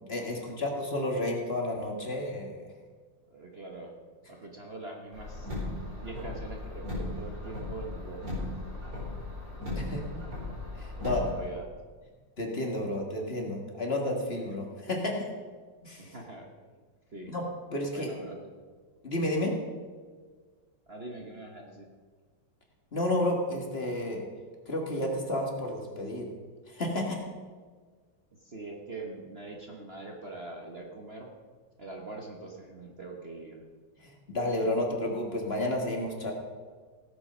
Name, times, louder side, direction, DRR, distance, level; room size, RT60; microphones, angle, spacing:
voice 1, 0.1-2.7 9.7-10.0 10.8-11.2 12.4-15.3 15.8-16.1 17.3-18.1 19.0-19.5 22.9-24.2 24.7-26.3 26.7-27.2 34.0-36.3, left 1 dB, 35° left, 0 dB, 1.9 m, -31 dB
voice 2, 3.3-3.9 4.3-8.3 9.8-10.1 11.0-11.7 16.0-16.5 17.1-17.3 17.9-18.4 20.9-21.9 28.3-31.3 31.8-33.6, right 3 dB, 35° right, 0 dB, 1.3 m, -43 dB
Car, 5.1-11.5, left 2 dB, 60° right, 5.1 m, -37 dB
17.0 x 8.4 x 5.5 m, 1.5 s
omnidirectional pair, 2.0 m